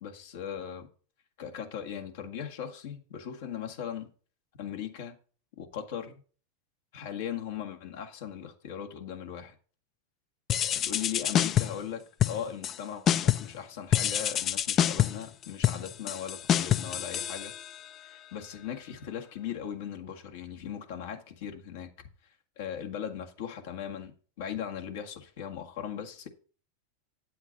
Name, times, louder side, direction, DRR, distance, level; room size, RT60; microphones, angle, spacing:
voice 1, 0.0-0.9 1.4-4.1 4.6-5.2 5.6-6.2 6.9-9.5 10.7-17.5 18.0-21.9 22.6-26.3, left 8 dB, 70° left, 1.7 m, -38 dB
sound 1, 10.5-11.9 12.2-12.8 13.1-13.6 13.9-17.9, left 10 dB, 35° left, 0.5 m, -27 dB
9.1 x 7.9 x 4.1 m
hypercardioid pair, 105°, 0 cm